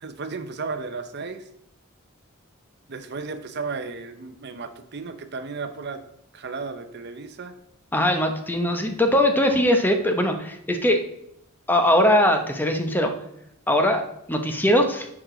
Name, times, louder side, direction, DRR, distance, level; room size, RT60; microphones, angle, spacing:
voice 1, 0.0-1.4 2.9-6.0 6.3-7.5, right 4 dB, 50° right, 9 dB, 0.7 m, -34 dB
voice 2, 7.9-11.0 11.7-13.1 13.7-14.0 14.3-15.1, left 1 dB, 10° left, 5 dB, 0.8 m, -21 dB
11.0 x 4.9 x 3.8 m, 0.77 s
head